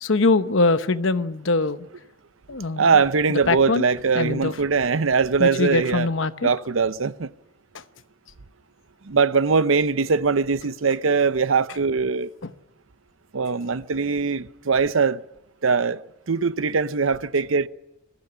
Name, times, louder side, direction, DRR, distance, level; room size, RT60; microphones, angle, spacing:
voice 1, 0.0-1.9 2.5-2.9 3.3-3.8 4.1-4.5 5.4-6.5 12.4-12.5, left 3 dB, 70° left, 0.9 m, -22 dB
voice 2, 2.8-6.1 6.4-7.3 9.1-12.3 13.3-15.2 15.6-16.0 16.3-17.7, right 5 dB, 80° right, 0.7 m, -21 dB
21.5 x 15.0 x 9.8 m
head